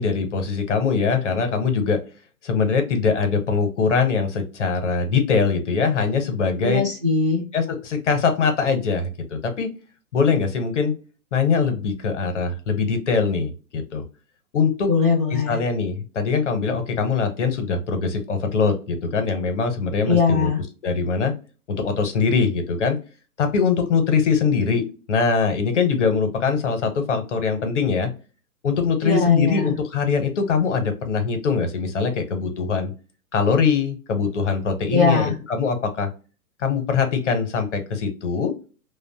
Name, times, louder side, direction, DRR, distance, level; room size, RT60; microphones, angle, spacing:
voice 1, 0.0-2.0 2.4-6.9 7.5-9.7 10.1-10.9 11.3-14.0 14.5-14.9 15.3-20.5 20.8-21.3 21.7-23.0 23.4-28.1 28.6-32.9 33.3-36.1 36.6-38.5, left 5 dB, 50° left, 7 dB, 0.7 m, -22 dB
voice 2, 6.6-7.4 14.9-15.6 20.0-20.6 29.0-29.7 34.9-35.3, left 4 dB, 20° right, -3 dB, 0.5 m, -20 dB
2.5 x 2.1 x 2.6 m, 0.34 s
figure-of-eight pair, 130°, 45 cm